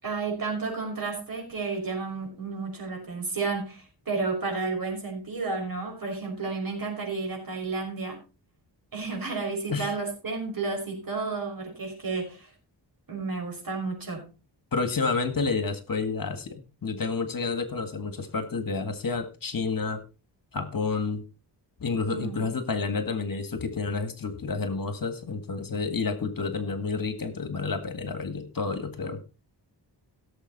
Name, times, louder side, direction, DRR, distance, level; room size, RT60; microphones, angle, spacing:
voice 1, 0.0-8.2 8.9-12.5 13.1-14.3 22.1-22.4, right 4 dB, 50° right, 1 dB, 5.8 m, -32 dB
voice 2, 14.7-20.0 20.5-21.2 21.8-29.2, left 4 dB, 50° left, 9 dB, 1.9 m, -30 dB
17.0 x 7.3 x 4.2 m, 0.30 s
wide cardioid pair, 130°, 42 cm